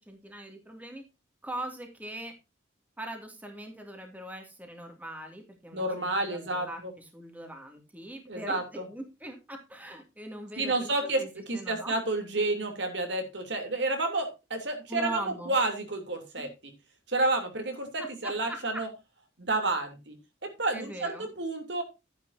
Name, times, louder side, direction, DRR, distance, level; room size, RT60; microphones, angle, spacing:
voice 1, 0.1-1.0 1.4-2.3 3.0-6.8 7.1-11.9 14.9-15.6 16.4-16.5 18.5-18.8 20.7-21.3, right 1 dB, 10° right, 3 dB, 2.3 m, -41 dB
voice 2, 5.7-6.9 8.3-8.9 10.6-16.7 17.1-18.9 19.4-20.2 20.4-21.8, right 2 dB, 65° right, 5 dB, 3.1 m, -30 dB
12.0 x 10.5 x 2.7 m, 0.26 s
head